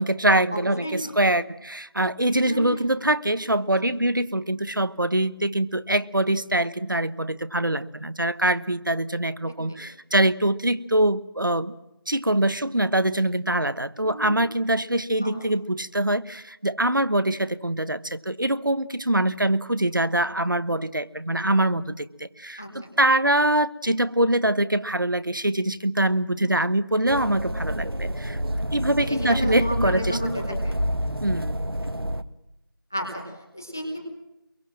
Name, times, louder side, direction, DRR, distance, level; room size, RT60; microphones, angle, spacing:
voice 1, 0.0-11.7 12.1-28.4 28.7-30.2 31.2-31.6, right 1 dB, 60° right, 14 dB, 1.2 m, -24 dB
voice 2, 0.5-1.1 2.4-3.0 9.7-9.8 14.0-14.4 15.2-15.4 22.6-22.9 26.4-26.5 29.0-30.8 32.9-34.1, equal, 10° left, 3 dB, 1.0 m, -32 dB
sound 1, 27.1-32.2, equal, 85° right, 1.7 m, -28 dB
24.0 x 23.0 x 7.5 m, 0.89 s
figure-of-eight pair, 175°, 12 cm